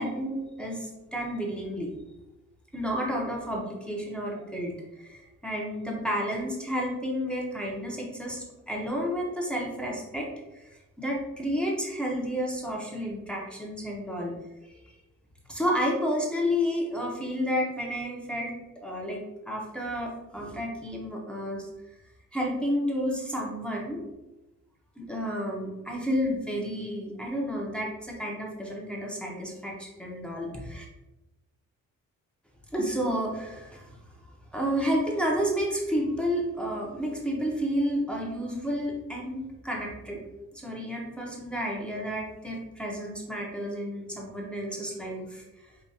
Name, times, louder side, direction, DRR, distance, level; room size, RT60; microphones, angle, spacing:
voice 1, 0.0-1.9 2.7-10.3 10.5-14.4 14.6-14.9 15.5-21.7 22.3-24.0 25.0-30.9 32.7-33.9 34.5-40.2 40.5-45.7, equal, 5° left, -2 dB, 0.7 m, -31 dB
4.8 x 2.4 x 2.7 m, 1.0 s
cardioid pair, 95°, 32 cm